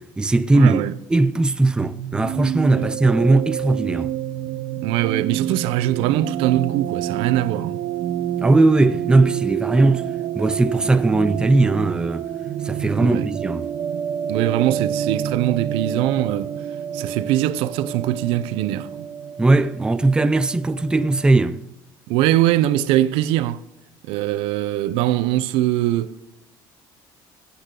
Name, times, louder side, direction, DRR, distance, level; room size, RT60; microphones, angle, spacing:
voice 1, 0.0-0.8 1.1-4.1 8.4-10.0 10.4-12.3 12.6-13.7 19.4-21.6, right 2 dB, 10° right, 0.5 m, -18 dB
voice 2, 0.5-0.9 2.8-2.9 4.8-7.8 13.0-13.3 14.3-16.5 16.9-19.1 22.1-23.6 24.0-26.2, right 13 dB, 90° right, 0.7 m, -22 dB
sound 1, 1.8-21.3, right 10 dB, 55° right, 0.9 m, -28 dB
24.0 x 8.4 x 3.8 m
cardioid pair, 135°, 9 cm